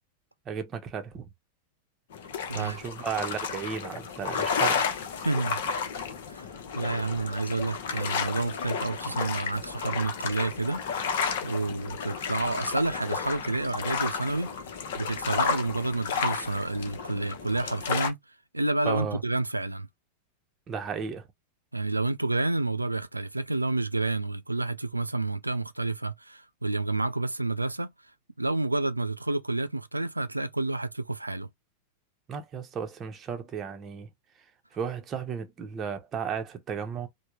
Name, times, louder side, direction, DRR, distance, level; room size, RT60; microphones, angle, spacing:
voice 1, 0.5-1.3 2.5-4.9 18.9-19.2 20.7-21.3 32.3-34.1 34.7-37.1, right 6 dB, 25° right, 0.8 m, -34 dB
sound 1, 2.1-18.1, left 6 dB, 55° left, 0.7 m, -32 dB
voice 2, 5.2-5.6 6.3-6.5 6.7-11.1 11.4-14.5 15.0-18.2 18.5-19.9 21.7-27.9 28.4-31.5, right 2 dB, 85° right, 0.3 m, -29 dB
3.4 x 2.1 x 3.0 m
figure-of-eight pair, 90°, 0 cm